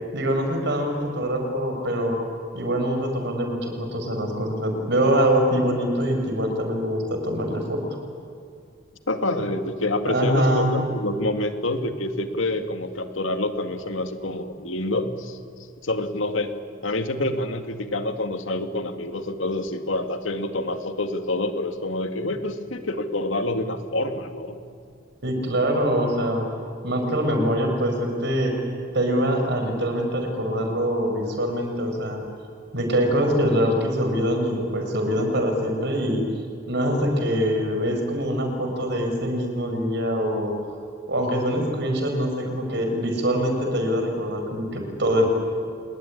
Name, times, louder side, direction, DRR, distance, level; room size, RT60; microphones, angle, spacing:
voice 1, 0.1-2.2 2.5-7.8 10.1-10.7 25.2-26.5 26.8-28.5 28.9-32.2 32.7-36.2 36.7-40.5 41.1-45.3, equal, 60° right, 4 dB, 5.7 m, -24 dB
voice 2, 9.1-15.4 15.8-16.5 16.8-24.6, left 1 dB, 85° left, 7 dB, 2.2 m, -27 dB
28.5 x 20.5 x 9.9 m, 2.4 s
head